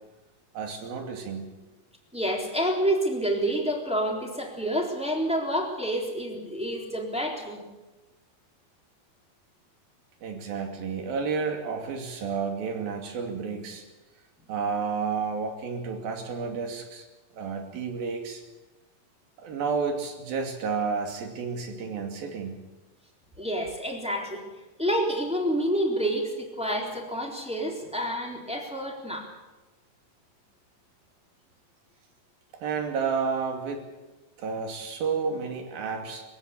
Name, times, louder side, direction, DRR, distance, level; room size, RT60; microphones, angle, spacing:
voice 1, 0.5-1.7 10.2-13.8 14.5-17.1 17.3-18.4 19.4-22.6 32.6-33.8 34.4-36.2, right 5 dB, 85° right, 3 dB, 4.5 m, -31 dB
voice 2, 2.1-7.6 23.4-24.4 24.8-29.3, equal, ahead, -1 dB, 3.3 m, -28 dB
22.5 x 16.0 x 8.4 m, 1.1 s
omnidirectional pair, 4.1 m